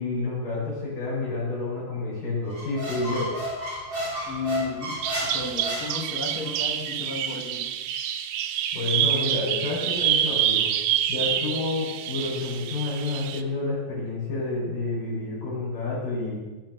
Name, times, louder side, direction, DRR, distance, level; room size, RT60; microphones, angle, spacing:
voice 1, 0.0-3.3 8.7-10.7 11.1-16.4, left 3 dB, 75° left, -10 dB, 6.7 m, -29 dB
Squeak, 2.5-6.5, equal, 15° right, 2.6 m, -32 dB
voice 2, 4.3-7.8, left 4 dB, 50° left, 2 dB, 1.0 m, -34 dB
Bird vocalization bird call bird song, 5.0-13.4, right 10 dB, 85° right, 1.4 m, -27 dB
18.0 x 6.1 x 6.5 m, 1.2 s
omnidirectional pair, 3.8 m